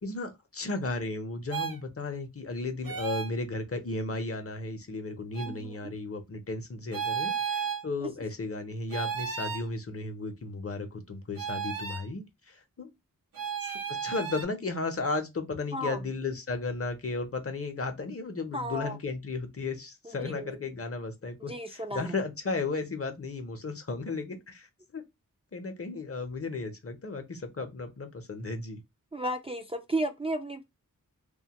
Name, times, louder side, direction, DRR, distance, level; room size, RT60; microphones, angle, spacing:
voice 1, 0.0-12.9 13.6-24.7 24.9-25.0 25.5-28.8, left 3 dB, 45° left, 0.7 m, -34 dB
sound 1, 1.5-1.8 2.8-3.3 5.3-5.5 6.9-7.8 8.9-9.7 11.4-12.1 13.3-14.4, right 7 dB, 90° right, 0.6 m, -33 dB
voice 2, 18.5-19.0 20.1-20.6 21.5-22.1 29.1-30.6, right 1 dB, 20° right, 0.3 m, -33 dB
2.6 x 2.2 x 2.8 m
wide cardioid pair, 50°, 33 cm